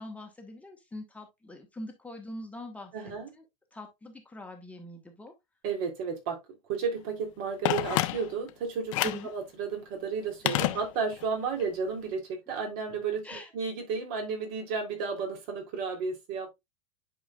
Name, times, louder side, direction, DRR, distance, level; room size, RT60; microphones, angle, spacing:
voice 1, 0.0-3.1 3.7-5.3 9.0-9.3 10.4-10.8 13.2-13.5, left 1 dB, 10° left, 1.3 m, -43 dB
voice 2, 2.9-3.3 5.6-6.4 6.7-16.6, right 5 dB, 55° right, 3.5 m, -33 dB
Telephone, 7.6-8.5 8.9-9.3 10.5-11.3 11.6-11.7, left 16 dB, 65° left, 0.9 m, -29 dB
10.5 x 4.9 x 2.4 m
supercardioid pair, 140°, 18 cm